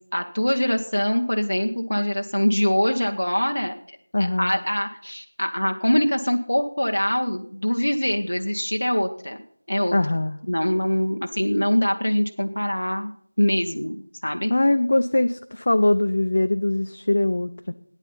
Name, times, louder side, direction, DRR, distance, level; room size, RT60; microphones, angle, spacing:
voice 1, 0.1-3.7 4.2-9.4 9.7-10.0 10.5-13.1 13.4-14.0 14.2-14.5, equal, 70° left, 4 dB, 1.1 m, -23 dB
voice 2, 4.1-4.5 9.9-10.4 14.5-17.7, left 1 dB, 35° left, 10 dB, 0.4 m, -22 dB
13.5 x 9.7 x 5.6 m, 0.65 s
figure-of-eight pair, 175°, 0 cm